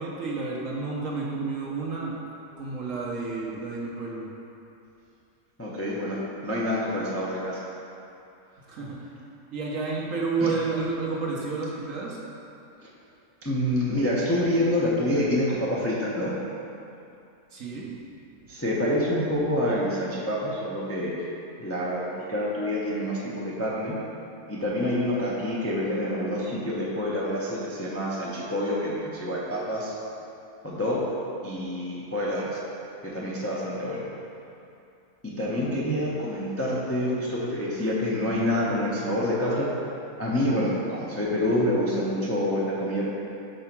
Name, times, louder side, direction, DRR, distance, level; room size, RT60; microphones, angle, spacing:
voice 1, 0.0-2.1 2.6-4.2 8.7-9.1 9.5-12.2 17.5-17.9, right 4 dB, 60° right, -4 dB, 1.3 m, -30 dB
voice 2, 5.6-6.2 6.4-7.6 10.4-10.5 13.4-16.3 18.5-21.3 21.6-24.0 24.5-29.9 30.6-31.0 31.4-32.6 33.0-34.1 35.2-39.7 40.2-43.1, left 1 dB, 15° left, -6 dB, 0.6 m, -27 dB
5.5 x 4.3 x 5.9 m, 2.7 s
omnidirectional pair, 1.6 m